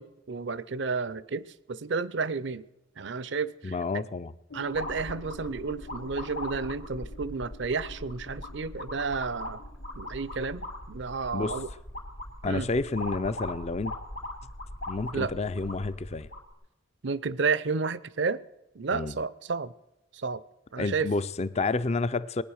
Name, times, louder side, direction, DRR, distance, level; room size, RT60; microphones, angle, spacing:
voice 1, 0.0-2.6 3.0-4.0 4.5-9.6 10.0-11.7 12.5-12.7 15.1-15.3 17.0-18.4 18.7-19.7 20.1-20.4 20.7-21.1, right 4 dB, 60° right, 0.6 m, -31 dB
voice 2, 3.6-4.3 11.3-11.5 12.4-13.9 14.9-16.3 18.9-19.1 20.8-22.4, left 3 dB, 35° left, 0.5 m, -29 dB
sound 1, 4.5-10.7, left 2 dB, 70° left, 1.8 m, -49 dB
sound 2, 4.7-16.5, left 1 dB, 90° left, 2.7 m, -40 dB
20.5 x 9.4 x 6.4 m
head